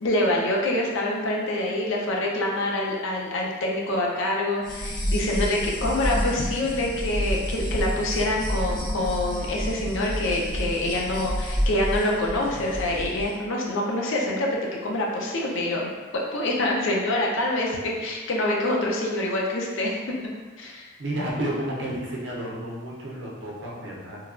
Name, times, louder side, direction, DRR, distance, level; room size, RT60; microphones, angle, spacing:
voice 1, 0.0-14.5 14.8-15.9 16.1-20.0 20.6-20.9, left 1 dB, 65° left, -2 dB, 0.5 m, -26 dB
sound 1, 4.6-13.3, equal, 20° left, 0.5 m, -29 dB
voice 2, 21.0-24.2, right 1 dB, 55° right, -4 dB, 0.6 m, -31 dB
3.1 x 2.3 x 2.4 m, 1.3 s
head